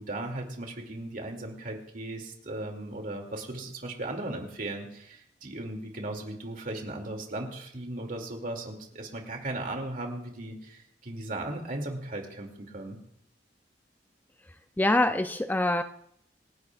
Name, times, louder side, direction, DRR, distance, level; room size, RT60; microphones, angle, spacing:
voice 1, 0.0-13.0, right 2 dB, 50° right, 2 dB, 2.5 m, -37 dB
voice 2, 14.8-15.8, left 1 dB, 10° left, 8 dB, 0.4 m, -24 dB
27.0 x 11.0 x 2.4 m, 0.69 s
head